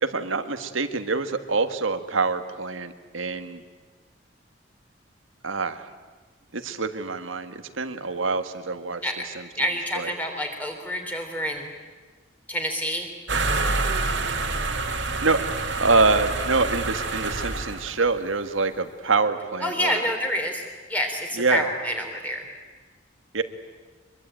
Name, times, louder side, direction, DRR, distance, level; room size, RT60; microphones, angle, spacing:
voice 1, 0.0-3.6 5.4-5.9 6.5-9.5 10.0-10.1 15.2-15.4 15.8-20.1 21.3-21.7 23.3-23.4, right 3 dB, 90° right, 9 dB, 1.7 m, -25 dB
voice 2, 9.6-11.7 12.5-13.1 19.6-20.6 20.9-22.4, equal, 10° left, 3 dB, 3.4 m, -27 dB
sound 1, 13.3-18.1, right 3 dB, 70° right, 2.5 m, -27 dB
24.0 x 22.5 x 8.9 m, 1.3 s
head